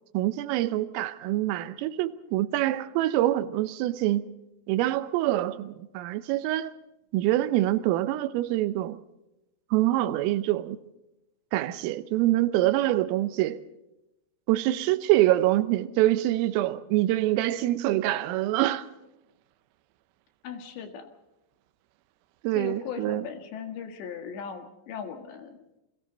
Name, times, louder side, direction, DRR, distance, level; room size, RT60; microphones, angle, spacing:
voice 1, 0.1-4.3 4.7-6.8 7.1-9.0 9.7-10.8 11.5-13.6 14.5-18.9 22.4-23.3, right 15 dB, 85° right, 3.6 m, -25 dB
voice 2, 20.4-21.1 22.6-25.6, left 7 dB, 65° left, 3.7 m, -38 dB
28.5 x 22.5 x 4.0 m
omnidirectional pair, 5.8 m